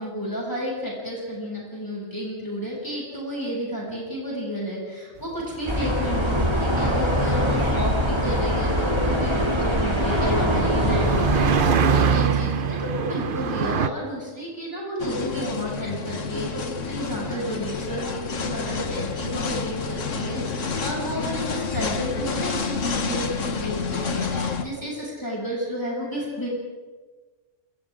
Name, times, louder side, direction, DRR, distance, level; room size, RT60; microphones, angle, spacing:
voice 1, 0.0-26.5, equal, 15° left, -5 dB, 7.8 m, -31 dB
sound 1, 5.4-13.9, right 6 dB, 50° right, 0.9 m, -26 dB
sound 2, 5.7-11.8, equal, 20° right, 3.1 m, -23 dB
sound 3, 15.0-24.6, left 4 dB, 80° left, 1.8 m, -29 dB
28.5 x 28.0 x 3.9 m, 1.3 s
omnidirectional pair, 1.3 m